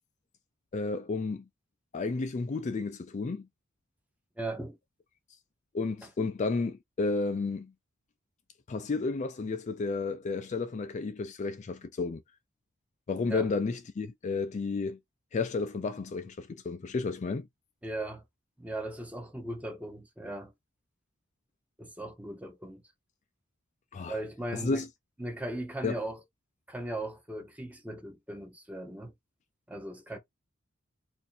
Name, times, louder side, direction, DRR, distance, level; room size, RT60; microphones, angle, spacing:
voice 1, 0.7-1.4 1.9-3.5 5.7-7.7 8.7-12.2 13.1-15.0 15.3-17.5 23.9-24.2 24.5-24.9 25.8-26.0, left 4 dB, 35° left, 0.3 m, -32 dB
voice 2, 4.4-4.8 13.3-13.5 17.8-18.2 18.6-20.5 21.8-22.8 24.1-24.9 25.2-26.2 26.7-29.1 29.7-30.2, right 1 dB, 5° right, 0.7 m, -38 dB
2.7 x 2.5 x 4.1 m
head